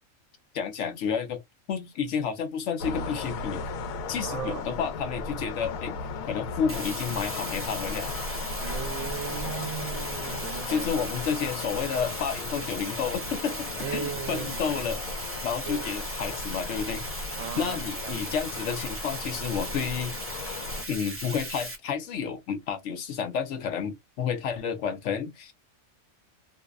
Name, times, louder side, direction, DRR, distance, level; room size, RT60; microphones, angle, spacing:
voice 1, 0.5-1.4 1.7-3.7 4.1-8.1 10.7-15.0 15.4-17.1 17.6-20.2 20.9-25.5, left 7 dB, 65° left, 0.9 m, -31 dB
sound 1, 2.8-20.8, left 4 dB, 90° left, 1.0 m, -36 dB
voice 2, 4.2-4.7 8.6-11.0 13.8-14.6 15.7-15.9 17.4-18.2, right 9 dB, 70° right, 0.9 m, -37 dB
Bathtub (filling or washing), 6.7-21.8, right 1 dB, 15° right, 0.4 m, -38 dB
2.6 x 2.1 x 2.2 m
omnidirectional pair, 1.4 m